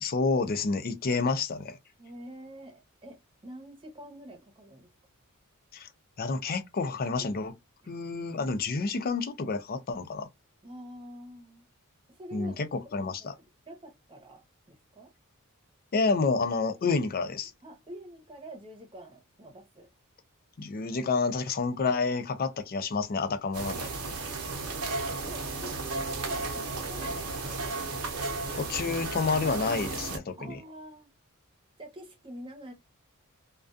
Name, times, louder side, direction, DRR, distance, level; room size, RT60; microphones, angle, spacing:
voice 1, 0.0-1.8 5.7-5.9 6.2-7.5 7.9-10.3 12.3-13.3 15.9-17.5 20.6-23.9 28.5-30.6, left 4 dB, 40° left, 0.4 m, -29 dB
voice 2, 2.0-4.9 7.2-7.3 7.8-8.0 10.6-11.7 12.1-12.6 13.2-15.1 16.8-17.0 17.6-19.9 25.3-28.3 30.4-31.1 31.8-32.7, right 1 dB, 25° right, 0.8 m, -46 dB
sound 1, 23.5-30.2, right 3 dB, 80° right, 0.8 m, -34 dB
2.3 x 2.3 x 2.5 m
head